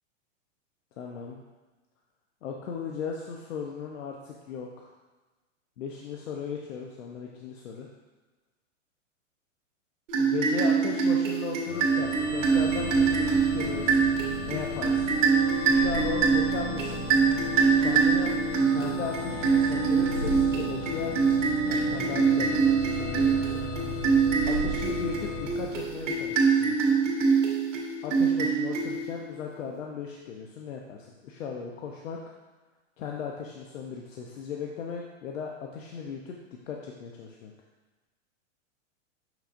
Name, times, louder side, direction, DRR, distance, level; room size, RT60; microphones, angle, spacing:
voice 1, 1.0-1.4 2.4-4.9 5.8-7.9 10.2-15.2 15.7-17.0 17.8-18.3 18.7-23.6 24.5-27.0 28.0-32.2 33.0-36.3 36.7-37.5, left 6 dB, 80° left, 0 dB, 0.8 m, -37 dB
sound 1, 10.1-29.3, right 5 dB, 75° right, 1.9 m, -25 dB
sound 2, 11.7-26.4, left 1 dB, 20° left, 1.5 m, -36 dB
6.6 x 6.2 x 2.5 m, 1.2 s
supercardioid pair, 160°, 38 cm